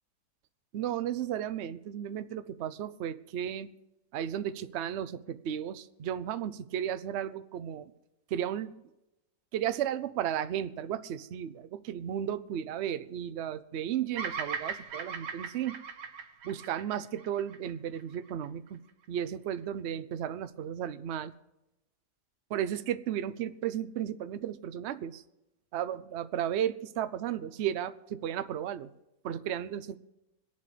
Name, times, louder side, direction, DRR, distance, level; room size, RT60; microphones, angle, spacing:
voice 1, 0.7-3.7 4.1-7.9 8.3-8.7 9.5-15.8 16.4-18.8 19.1-21.3 22.5-25.2 25.7-28.9 29.2-30.0, right 10 dB, 60° right, 13 dB, 0.7 m, -34 dB
Bird vocalization bird call bird song, 14.2-18.5, right 6 dB, 80° right, 1.5 m, -39 dB
26.0 x 11.0 x 3.3 m, 0.96 s
omnidirectional pair, 1.8 m